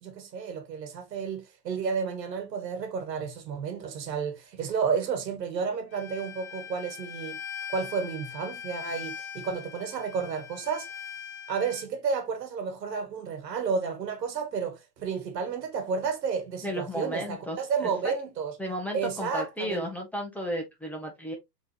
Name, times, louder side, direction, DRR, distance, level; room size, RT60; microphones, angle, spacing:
voice 1, 0.0-7.4 7.7-10.9 11.5-18.5 18.9-19.8, right 5 dB, 75° right, 1.6 m, -31 dB
Bowed string instrument, 5.9-11.9, left 8 dB, 25° left, 0.7 m, -41 dB
voice 2, 16.6-17.6 18.6-21.3, equal, 5° left, 1.5 m, -33 dB
4.1 x 3.7 x 3.1 m
hypercardioid pair, 115°, 50 cm